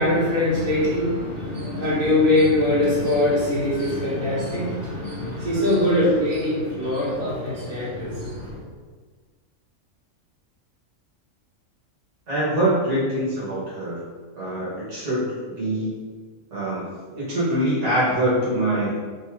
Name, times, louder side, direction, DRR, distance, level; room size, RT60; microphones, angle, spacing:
voice 1, 0.0-8.6, left 1 dB, 80° right, -9 dB, 1.9 m, -22 dB
voice 2, 12.3-14.0 14.4-16.0 16.5-19.0, right 1 dB, 60° right, -9 dB, 1.6 m, -24 dB
3.6 x 2.7 x 4.4 m, 1.5 s
omnidirectional pair, 1.4 m